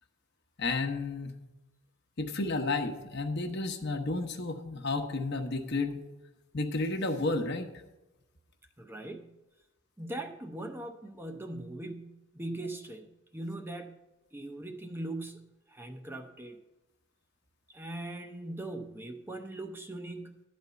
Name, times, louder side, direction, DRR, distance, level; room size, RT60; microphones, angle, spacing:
voice 1, 0.6-1.3 2.2-6.0 6.5-7.7, left 3 dB, 55° left, 5 dB, 1.0 m, -32 dB
voice 2, 8.8-9.4 10.0-14.0 14.3-16.6 17.7-20.4, right 1 dB, 10° right, 5 dB, 0.6 m, -40 dB
11.5 x 4.3 x 8.1 m, 1.0 s
head